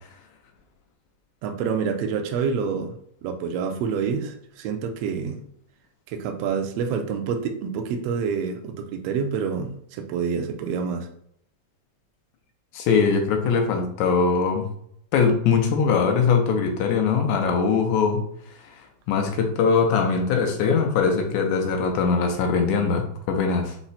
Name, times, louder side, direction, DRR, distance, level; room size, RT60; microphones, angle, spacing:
voice 1, 1.4-2.9 3.2-5.4 6.1-11.1, right 6 dB, 75° right, 4 dB, 1.5 m, -27 dB
voice 2, 12.7-14.7 15.1-18.2 18.6-23.8, left 5 dB, 85° left, 3 dB, 2.0 m, -21 dB
5.7 x 2.1 x 4.0 m, 0.69 s
omnidirectional pair, 3.3 m